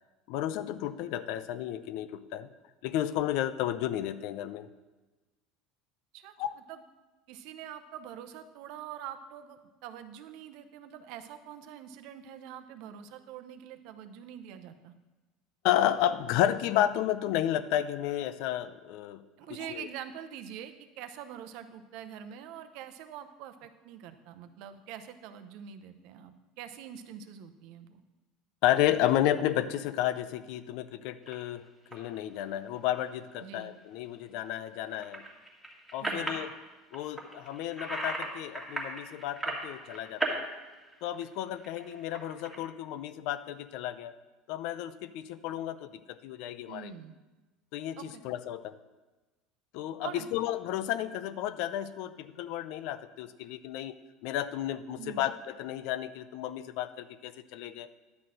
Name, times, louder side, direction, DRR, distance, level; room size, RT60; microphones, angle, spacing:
voice 1, 0.3-2.5 2.8-4.7 6.4-6.6 15.6-19.2 19.7-19.9 28.6-31.6 31.9-35.2 35.9-36.5 36.9-40.4 41.0-44.1 44.5-46.9 47.7-48.8 49.7-53.9 54.2-57.9, left 12 dB, 60° left, 13 dB, 0.5 m, -32 dB
voice 2, 7.3-14.9 19.4-28.0 33.4-33.7 36.0-36.3 46.7-47.2 48.0-48.2 50.0-50.3 55.0-55.2, right 9 dB, 60° right, 9 dB, 0.7 m, -45 dB
sound 1, 31.2-31.3 31.9-32.2 32.6-33.0 34.8-36.5 36.9-38.3 38.5-40.4 40.7-42.6, right 2 dB, 5° right, 1.5 m, -36 dB
10.5 x 4.2 x 7.7 m, 1.2 s
cardioid pair, 160°, 0 cm